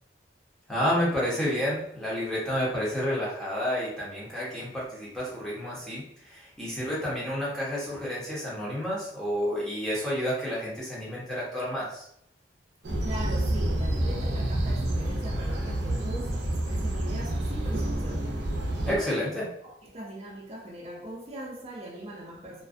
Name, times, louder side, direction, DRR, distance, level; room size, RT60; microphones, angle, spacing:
voice 1, 0.7-12.1 18.8-19.4, equal, 5° left, 0.8 m, -30 dB
sound 1, 12.8-19.0, right 1 dB, 75° right, 0.5 m, -28 dB
voice 2, 13.0-18.3 18.8-19.3 19.6-22.6, right 1 dB, 35° right, 0.6 m, -41 dB
2.4 x 2.2 x 2.4 m
head